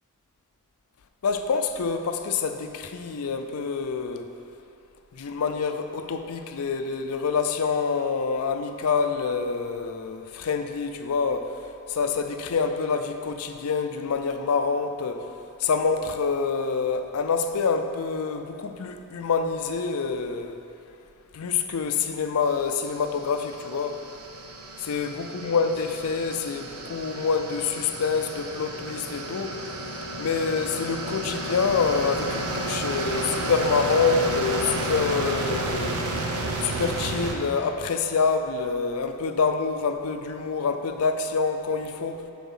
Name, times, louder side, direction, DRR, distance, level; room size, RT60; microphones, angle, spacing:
voice 1, 1.2-4.3 5.1-11.5 11.9-15.3 15.6-20.6 21.3-24.0 24.8-29.6 30.2-36.0 36.6-42.2, left 5 dB, 75° left, 8 dB, 0.5 m, -26 dB
sound 1, 22.7-37.4, right 1 dB, 75° right, 0.7 m, -32 dB
7.1 x 4.8 x 5.6 m, 2.7 s
head